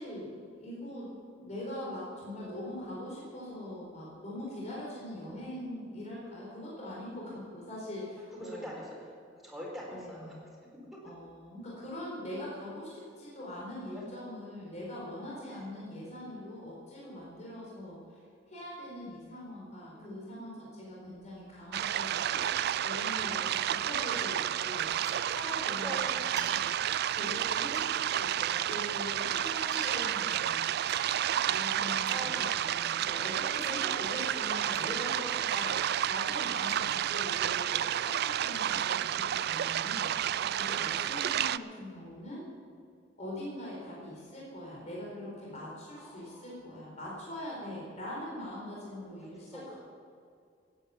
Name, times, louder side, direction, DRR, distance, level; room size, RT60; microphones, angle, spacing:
voice 1, 0.0-0.3 0.6-8.7 9.9-10.4 11.0-22.4 22.8-24.9 25.3-26.6 27.1-30.6 31.5-35.7 36.1-40.1 40.6-42.4 43.2-49.8, left 1 dB, 40° left, -5 dB, 4.3 m, -42 dB
voice 2, 8.2-9.1 9.4-10.4 13.8-14.0 15.5-15.7 19.9-20.7 25.6-26.4 27.0-27.5 32.0-32.6 33.2-33.4 38.2-39.2 40.2-41.1 45.9-46.5 49.2-49.8, equal, ahead, -4 dB, 4.4 m, -46 dB
sound 1, 21.0-22.7 23.0-23.1 23.3-25.7 26.1-27.4 27.7-31.6 31.9-33.8 34.1-34.2 34.4-35.4 35.7-37.8 38.2-39.0, right 4 dB, 20° right, 1.8 m, -49 dB
sound 2, 21.7-41.6, right 10 dB, 55° right, 0.3 m, -31 dB
17.0 x 9.4 x 7.2 m, 2.3 s
head